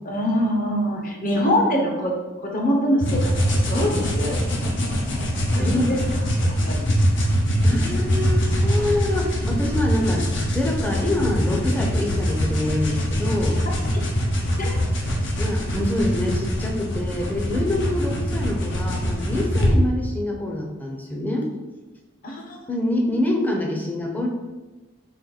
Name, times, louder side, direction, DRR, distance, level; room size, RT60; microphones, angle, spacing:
voice 1, 0.0-2.2 2.4-4.4 5.5-6.0 6.4-6.9 13.9-14.0 14.6-14.7 22.2-22.6, equal, 45° left, 0 dB, 0.9 m, -24 dB
sound 1, 3.0-19.7, equal, 70° left, 0.9 m, -23 dB
voice 2, 7.6-13.6 15.4-21.5 22.7-24.3, left 1 dB, 10° left, 0 dB, 0.6 m, -26 dB
4.3 x 3.1 x 4.0 m, 1.1 s
head